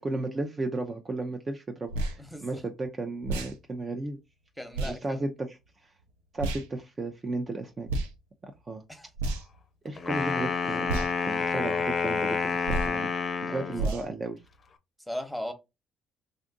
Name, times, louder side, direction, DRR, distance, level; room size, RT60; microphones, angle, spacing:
voice 1, 0.0-4.2 4.8-5.9 6.3-7.9 8.4-8.8 9.8-13.1 13.4-14.4, right 2 dB, 35° right, 0.5 m, -34 dB
sound 1, 1.9-2.2 3.2-3.5 4.7-4.9 6.4-6.6 7.9-8.1 9.1-9.6 10.9-11.1 12.6-13.0 13.8-14.1, right 2 dB, 90° right, 0.4 m, -30 dB
voice 2, 2.2-2.6 4.6-5.2 8.9-9.0 13.5-14.0 15.1-15.5, left 1 dB, ahead, 1.0 m, -37 dB
Wind instrument woodwind instrument, 10.0-13.9, left 5 dB, 45° left, 0.5 m, -29 dB
2.6 x 2.4 x 3.8 m
hypercardioid pair, 55°, 0 cm